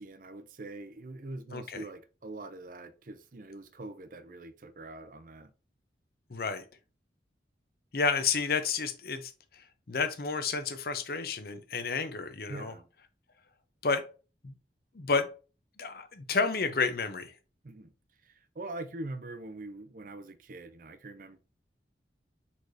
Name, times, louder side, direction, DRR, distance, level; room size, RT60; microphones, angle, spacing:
voice 1, 0.0-5.5 12.5-12.9 17.6-17.9 18.2-21.4, right 2 dB, 50° right, 0.5 m, -43 dB
voice 2, 1.5-1.8 6.3-6.6 7.9-12.7 13.8-14.0 14.4-14.5 14.9-15.3 15.8-17.3, left 4 dB, 55° left, 0.7 m, -31 dB
4.7 x 4.2 x 2.6 m
head